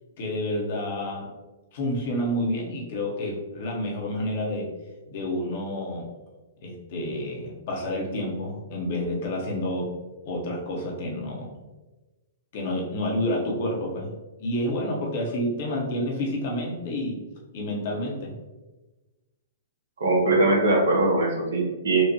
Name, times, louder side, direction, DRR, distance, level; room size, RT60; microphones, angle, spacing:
voice 1, 0.2-1.3 1.7-4.7 5.1-6.1 6.6-9.9 10.3-11.5 12.5-17.2 17.5-18.3, left 1 dB, 50° left, -2 dB, 1.0 m, -29 dB
voice 2, 20.0-22.0, right 2 dB, 65° right, -1 dB, 1.0 m, -21 dB
4.5 x 2.4 x 2.8 m, 1.2 s
figure-of-eight pair, 110°, 0 cm